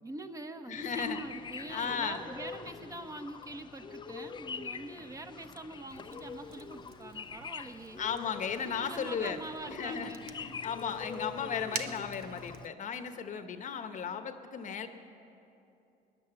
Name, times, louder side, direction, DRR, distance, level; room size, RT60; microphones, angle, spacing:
voice 1, 0.0-8.0 8.6-10.3, right 2 dB, 20° right, 6 dB, 0.9 m, -44 dB
voice 2, 0.7-1.2 1.7-2.3 8.0-9.4 9.7-14.9, left 6 dB, 50° left, 8 dB, 1.0 m, -35 dB
sound 1, 0.7-12.7, left 6 dB, 25° left, 0.5 m, -45 dB
Fire, 5.9-12.7, right 9 dB, 70° right, 0.7 m, -48 dB
19.5 x 10.5 x 7.0 m, 2.8 s
cardioid pair, 110°, 17 cm